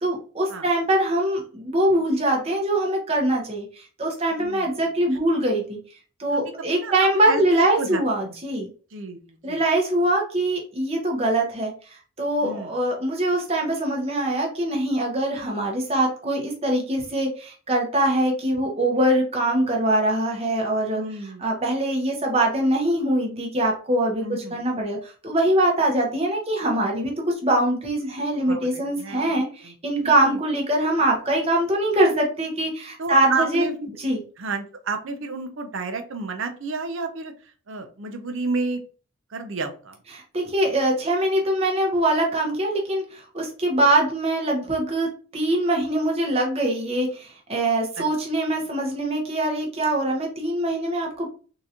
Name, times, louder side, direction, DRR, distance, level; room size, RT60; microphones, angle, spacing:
voice 1, 0.0-5.8 6.2-8.7 9.4-11.7 12.2-33.7 34.0-34.2 40.1-51.3, right 1 dB, 30° right, 0 dB, 0.9 m, -23 dB
voice 2, 4.4-4.7 6.3-6.4 6.7-8.3 8.9-9.2 9.5-9.6 12.4-12.7 21.0-21.4 24.2-24.6 28.5-29.7 30.0-30.4 33.0-33.9 34.4-37.3 37.7-38.8 39.3-40.0 48.0-48.1, right 3 dB, 60° right, 7 dB, 0.6 m, -31 dB
3.8 x 2.6 x 2.8 m, 0.39 s
head